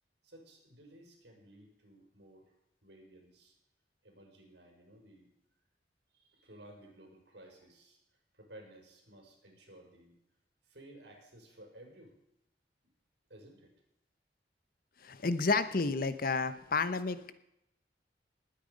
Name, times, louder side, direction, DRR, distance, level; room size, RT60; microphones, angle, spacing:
voice 1, 0.2-2.5 2.8-3.5 4.0-5.3 6.1-10.2 10.6-12.1 13.3-13.7, right 1 dB, 75° right, 1 dB, 5.2 m, -56 dB
voice 2, 15.0-17.3, left 4 dB, 55° left, 13 dB, 0.9 m, -31 dB
20.0 x 9.1 x 5.3 m, 0.80 s
head